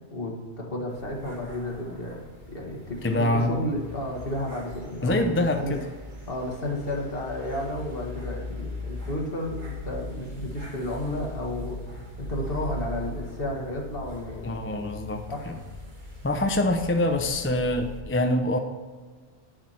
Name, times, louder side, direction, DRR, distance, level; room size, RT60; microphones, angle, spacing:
voice 1, 0.1-5.7 6.3-11.8 12.2-14.5 15.3-15.4, left 1 dB, 55° left, 0 dB, 1.9 m, -32 dB
sound 1, 0.9-18.0, left 1 dB, 45° right, 1.9 m, -40 dB
voice 2, 3.0-3.5 5.0-5.8 14.4-15.6 16.2-18.6, left 1 dB, 15° left, 5 dB, 0.6 m, -25 dB
9.7 x 7.7 x 4.4 m, 1.4 s
omnidirectional pair, 1.2 m